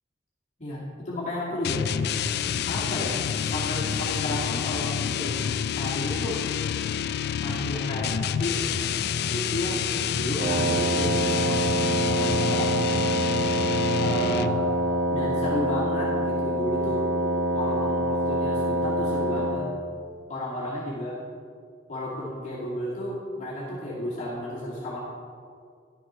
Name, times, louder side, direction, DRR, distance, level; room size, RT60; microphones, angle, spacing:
voice 1, 0.6-1.8 2.7-3.2 3.5-6.4 7.4-8.6 9.3-9.9 10.1-11.6 12.1-12.9 14.0-14.6 15.1-17.3 17.5-19.6 20.3-21.2 21.9-25.0, left 1 dB, 40° left, -7 dB, 2.2 m, -32 dB
sound 1, 1.6-14.7, left 8 dB, 60° left, 0.3 m, -28 dB
Wind instrument woodwind instrument, 10.3-19.7, right 1 dB, 90° right, 1.1 m, -25 dB
12.0 x 7.0 x 4.3 m, 2.2 s
head